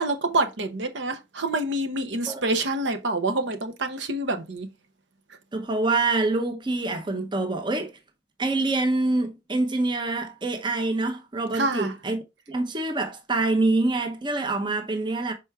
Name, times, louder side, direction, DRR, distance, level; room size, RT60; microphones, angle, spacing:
voice 1, 0.0-4.7 11.5-11.9, right 2 dB, 65° right, 0.9 m, -27 dB
voice 2, 5.5-7.9 8.4-12.2 12.5-15.3, right 2 dB, 25° right, 0.8 m, -25 dB
6.1 x 4.4 x 3.5 m
head